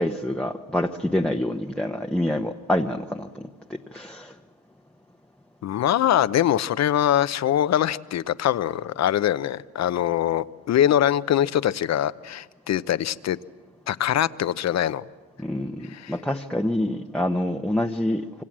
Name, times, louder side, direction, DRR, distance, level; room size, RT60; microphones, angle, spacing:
voice 1, 0.0-4.3 15.4-18.4, left 1 dB, 5° left, 4 dB, 1.0 m, -27 dB
voice 2, 5.6-13.4 13.9-15.0 15.9-16.1, left 11 dB, 60° left, 15 dB, 0.8 m, -23 dB
26.5 x 25.0 x 7.5 m, 1.3 s
cardioid pair, 90°, 30 cm